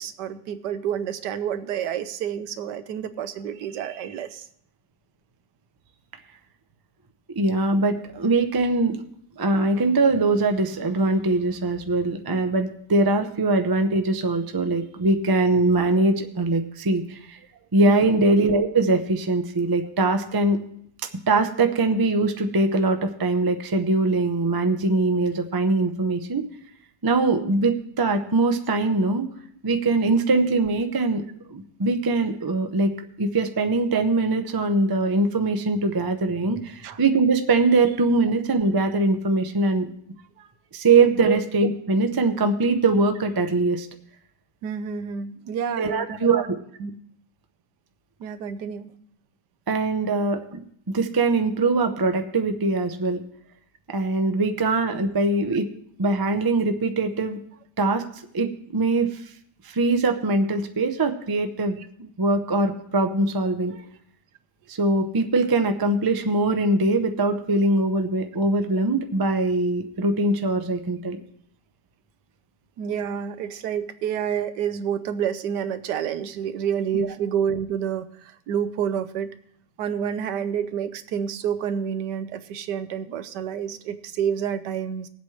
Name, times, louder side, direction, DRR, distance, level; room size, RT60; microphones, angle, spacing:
voice 1, 0.0-4.5 17.9-18.1 36.8-37.0 40.4-40.5 41.2-41.4 44.6-46.4 46.8-46.9 48.2-48.9 63.7-63.8 72.8-79.3 79.8-85.1, right 8 dB, 85° right, 11 dB, 1.4 m, -29 dB
voice 2, 7.3-9.0 9.4-17.4 17.7-20.6 21.3-26.4 27.0-29.3 29.6-31.2 31.5-32.9 33.2-39.9 40.7-43.9 45.8-46.6 49.7-50.6 50.9-53.2 53.9-55.7 56.0-57.4 57.8-58.0 58.3-59.2 59.6-63.7 64.7-71.2 76.9-77.1, right 2 dB, 35° right, 6 dB, 0.3 m, -22 dB
20.0 x 8.1 x 3.2 m, 0.67 s
omnidirectional pair, 1.8 m